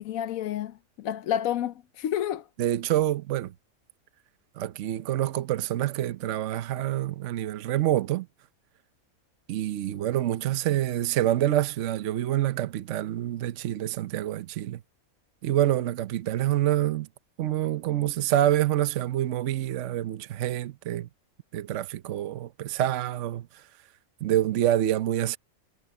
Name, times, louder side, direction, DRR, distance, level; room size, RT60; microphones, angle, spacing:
voice 1, 0.0-2.4, left 10 dB, 75° left, 1.1 m, -30 dB
voice 2, 2.6-3.5 4.6-8.3 9.5-14.8 15.4-17.1 17.4-21.1 21.5-23.4 24.2-25.4, right 13 dB, 65° right, 1.0 m, -27 dB
omnidirectional pair, 1.5 m